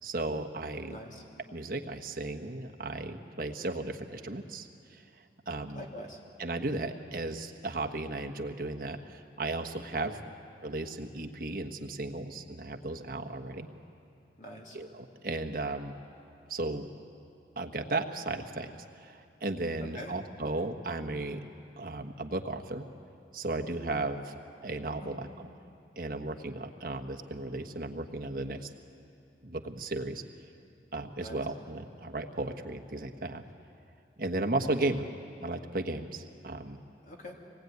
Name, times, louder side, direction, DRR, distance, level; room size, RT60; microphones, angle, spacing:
voice 1, 0.0-1.0 1.5-5.0 5.5-5.8 6.4-10.2 10.6-13.7 14.7-15.9 16.5-16.9 17.6-18.7 19.0-21.4 21.8-22.8 23.3-24.4 24.6-25.5 26.0-28.7 29.4-30.2 30.9-33.4 34.2-35.1 35.4-36.8, right 2 dB, 50° right, 4 dB, 1.3 m, -35 dB
voice 2, 0.9-1.2 5.7-6.2 14.4-14.8 19.9-20.1 25.0-25.2 31.2-31.4 37.0-37.3, equal, 45° left, -1 dB, 3.1 m, -44 dB
25.0 x 19.5 x 9.5 m, 2.6 s
head